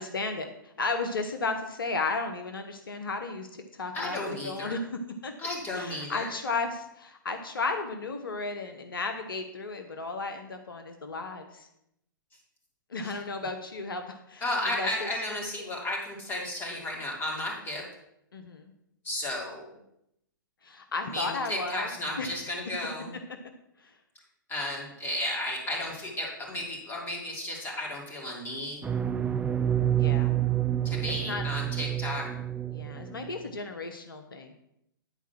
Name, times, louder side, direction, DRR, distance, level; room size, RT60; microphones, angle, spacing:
voice 1, 0.0-4.8 5.2-5.3 5.7-11.7 12.9-14.4 14.8-15.1 18.3-18.7 20.6-21.9 22.2-22.3 23.8-23.9 29.9-30.3 31.2-31.4 32.7-34.5, left 3 dB, 75° left, 6 dB, 1.1 m, -34 dB
voice 2, 3.9-4.8 5.4-6.3 13.0-13.1 14.4-17.8 19.0-19.6 21.1-23.1 24.5-28.9 30.8-32.3, left 1 dB, 20° left, -2 dB, 3.2 m, -33 dB
sound 1, 28.8-33.3, right 11 dB, 10° right, 0.4 m, -28 dB
10.5 x 4.7 x 6.1 m, 0.79 s
figure-of-eight pair, 115°, 12 cm